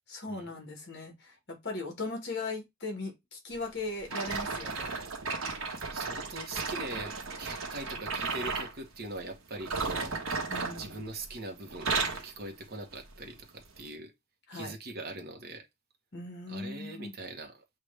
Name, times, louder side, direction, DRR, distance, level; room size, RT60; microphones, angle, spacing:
voice 1, 0.1-4.9 10.5-11.0 14.5-14.7 16.1-17.1, left 3 dB, 50° left, 1.6 m, -38 dB
sound 1, 4.1-8.7 9.6-11.4 11.7-12.3 12.9-13.1 13.8-13.9, right 4 dB, 85° right, 1.1 m, -34 dB
voice 2, 5.9-10.1 10.7-14.1 14.5-15.7 16.5-17.6, right 2 dB, 45° right, 0.9 m, -42 dB
6.5 x 2.5 x 3.3 m
head